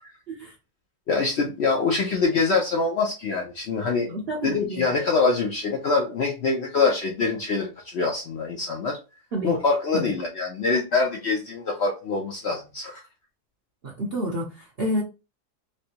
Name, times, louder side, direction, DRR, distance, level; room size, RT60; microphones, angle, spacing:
voice 1, 1.1-4.1 4.4-9.0 9.4-13.0, left 4 dB, 65° left, 0.7 m, -24 dB
voice 2, 4.1-4.9 9.3-9.6 9.9-10.1 13.8-15.0, equal, 55° right, 0.7 m, -29 dB
3.2 x 2.6 x 2.8 m
omnidirectional pair, 1.7 m